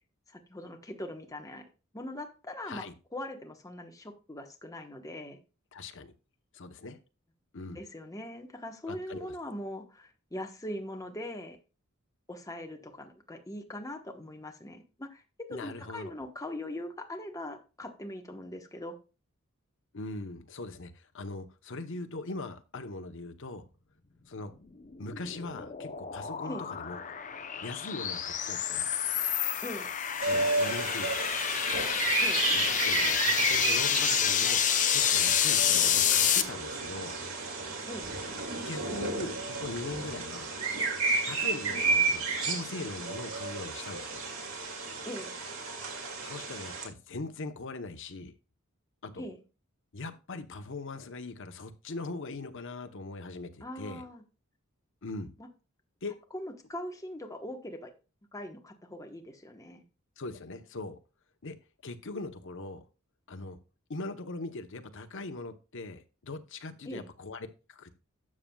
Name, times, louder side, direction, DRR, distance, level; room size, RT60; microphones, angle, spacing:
voice 1, 0.3-1.6 1.9-2.8 3.1-5.4 7.7-11.6 12.3-19.0 26.5-26.7 29.6-29.9 32.2-32.4 37.9-38.1 45.0-45.3 49.2-49.4 53.6-54.2 55.4-55.5 56.3-57.9 58.3-59.8 66.9-67.1, left 1 dB, 15° left, 1.1 m, -41 dB
voice 2, 2.6-2.9 5.7-6.1 6.5-7.0 7.5-7.8 8.9-9.3 15.5-16.1 19.9-23.7 24.3-24.5 25.0-27.0 27.6-28.9 30.2-31.3 32.5-37.1 38.6-40.5 41.2-44.2 46.2-48.3 49.0-49.2 49.9-54.0 55.0-55.3 56.0-56.1 60.2-61.0 61.4-61.6 61.8-62.8 63.3-63.6 63.9-67.9, left 2 dB, 65° left, 0.9 m, -41 dB
sound 1, 24.7-36.4, left 9 dB, 35° left, 0.7 m, -29 dB
sound 2, 30.2-46.9, right 3 dB, 75° right, 2.4 m, -32 dB
12.5 x 7.4 x 2.3 m
head